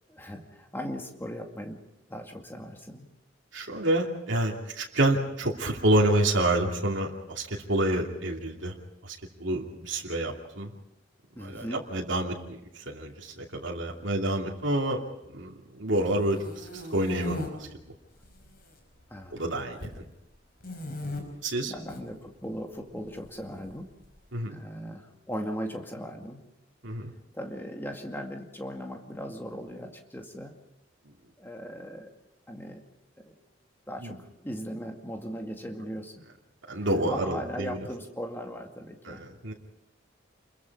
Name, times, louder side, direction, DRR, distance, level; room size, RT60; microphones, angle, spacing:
voice 1, 0.1-1.8 2.1-3.1 11.4-11.8 19.1-19.4 21.7-23.9 24.5-26.4 27.3-30.6 31.4-32.1 32.5-32.8 33.2-33.4 33.9-36.2 36.8-39.2, equal, 10° left, 3 dB, 2.2 m, -38 dB
voice 2, 3.5-7.4 7.7-8.7 9.0-9.1 9.4-10.7 11.4-12.6 12.9-15.0 15.3-15.5 15.8-17.5 19.3-19.8 21.4-21.7 24.3-24.6 26.8-27.1 34.0-34.1 36.7-37.8 39.1-39.2 39.4-39.5, right 1 dB, 70° right, -2 dB, 2.7 m, -28 dB
sound 1, 16.1-17.5 18.1-18.7 19.0-20.0 20.6-21.2 21.8-22.0 23.1-24.1, left 1 dB, 50° left, 5.3 m, -38 dB
28.5 x 22.0 x 4.8 m, 0.88 s
head